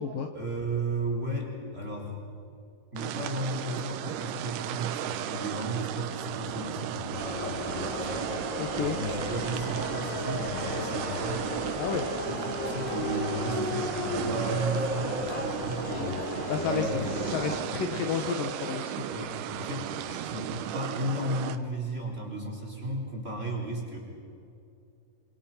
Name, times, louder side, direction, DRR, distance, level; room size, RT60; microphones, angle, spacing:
voice 1, 0.3-2.2 2.9-11.4 12.2-17.0 19.0-24.0, right 1 dB, 15° right, -1 dB, 4.2 m, -34 dB
sound 1, 3.0-21.6, right 11 dB, 80° right, 2.9 m, -35 dB
sound 2, 7.1-17.6, left 2 dB, 35° left, 2.3 m, -34 dB
voice 2, 8.6-9.0 11.8-12.1 16.5-16.9 17.3-19.0, left 6 dB, 65° left, 4 dB, 2.7 m, -31 dB
26.5 x 26.5 x 5.8 m, 2.7 s
omnidirectional pair, 4.7 m